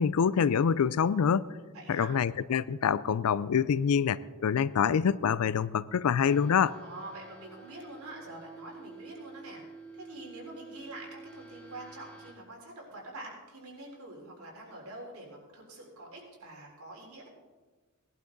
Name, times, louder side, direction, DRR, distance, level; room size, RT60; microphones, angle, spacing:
voice 1, 0.0-1.5 1.9-6.8, left 7 dB, 75° left, 18 dB, 0.4 m, -26 dB
voice 2, 1.7-2.2 6.8-9.6 9.9-17.3, right 2 dB, 75° right, -2 dB, 3.8 m, -46 dB
sound 1, 6.2-12.3, right 3 dB, 5° left, 2.3 m, -49 dB
17.5 x 11.5 x 3.9 m, 1.3 s
head